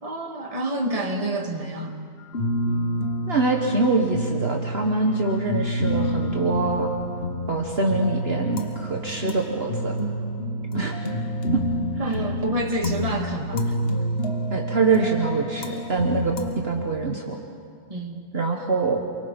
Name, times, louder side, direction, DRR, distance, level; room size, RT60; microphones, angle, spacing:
voice 1, 0.0-2.0 12.0-13.8 17.9-18.2, right 2 dB, 25° right, 2 dB, 1.9 m, -28 dB
sound 1, 2.3-16.6, equal, 50° left, 1.4 m, -28 dB
voice 2, 3.3-6.9 7.5-9.9 10.7-11.0 11.5-11.6 12.1-12.2 14.5-17.4 18.3-19.0, right 3 dB, 50° right, 1 dB, 1.6 m, -24 dB
28.5 x 23.5 x 5.3 m, 2.1 s
omnidirectional pair, 1.4 m